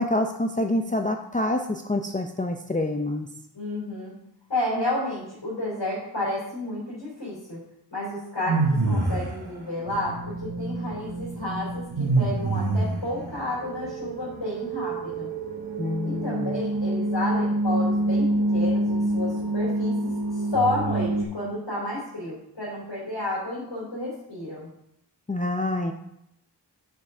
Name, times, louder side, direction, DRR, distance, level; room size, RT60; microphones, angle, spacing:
voice 1, 0.0-3.3 15.8-16.6 25.3-25.9, left 1 dB, 20° left, 4 dB, 0.5 m, -27 dB
voice 2, 3.5-4.1 4.5-7.6 7.9-15.3 16.0-24.7, left 1 dB, 80° left, -9 dB, 3.3 m, -31 dB
sound 1, 8.5-9.4 12.0-13.1, right 3 dB, 80° right, 1.4 m, -23 dB
sound 2, 9.9-21.3, right 2 dB, 55° right, 0.9 m, -28 dB
6.6 x 5.7 x 4.9 m, 0.79 s
wide cardioid pair, 45°, 43 cm